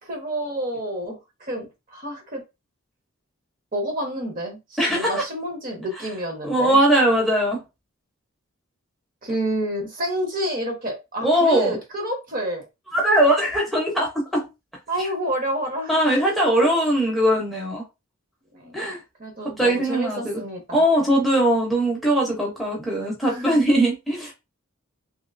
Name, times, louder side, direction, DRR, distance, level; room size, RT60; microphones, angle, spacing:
voice 1, 0.0-2.4 3.7-6.8 9.2-12.6 14.9-16.2 18.5-18.8 19.2-20.8 23.2-23.7, right 1 dB, 40° right, 1.0 m, -29 dB
voice 2, 4.8-5.2 6.4-7.6 11.2-11.8 12.9-14.4 15.0-15.1 15.9-17.8 18.7-19.0 19.6-20.4 20.7-24.3, right 1 dB, ahead, 0.7 m, -20 dB
3.0 x 2.8 x 2.5 m
head